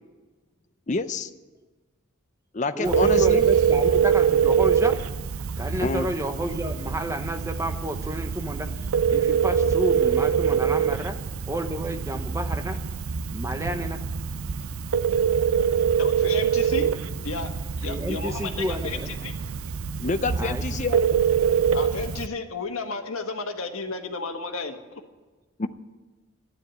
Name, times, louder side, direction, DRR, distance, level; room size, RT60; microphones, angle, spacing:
voice 1, 0.9-1.3 2.5-3.5 5.8-6.1 20.0-21.1 25.6-25.7, left 3 dB, 35° left, 10 dB, 0.6 m, -27 dB
voice 2, 2.7-5.0 5.6-11.2 11.5-12.8 13.3-14.0 17.9-19.1 20.4-20.6, equal, 15° right, 6 dB, 0.9 m, -31 dB
Telephone, 2.8-22.3, right 7 dB, 90° right, 0.5 m, -24 dB
voice 3, 16.0-16.9 17.2-17.5 17.8-19.3 21.7-25.0, left 4 dB, 85° left, 5 dB, 1.5 m, -33 dB
12.0 x 9.7 x 9.2 m, 1.3 s
head